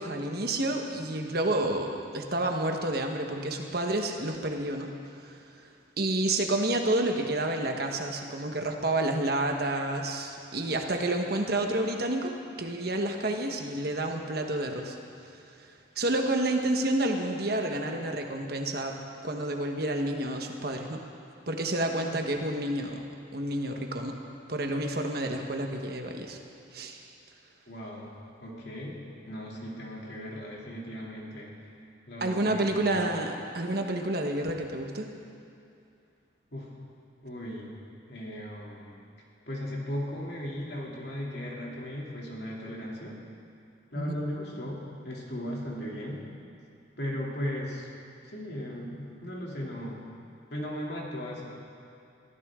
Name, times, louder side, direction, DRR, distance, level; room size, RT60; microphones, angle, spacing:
voice 1, 0.0-4.9 5.2-5.7 6.0-12.3 12.6-15.0 15.6-21.0 21.5-23.0 23.3-24.2 24.5-26.4 26.7-27.0 32.2-35.1 44.0-44.1, right 1 dB, 50° right, 3 dB, 1.3 m, -29 dB
voice 2, 27.7-28.1 28.4-31.6 32.1-33.0 36.5-36.7 37.2-37.7 38.1-38.9 39.5-43.2 43.9-46.2 47.0-47.9 48.2-50.0 50.5-51.6, equal, 55° left, -3 dB, 2.9 m, -37 dB
22.5 x 15.0 x 3.8 m, 2.6 s
head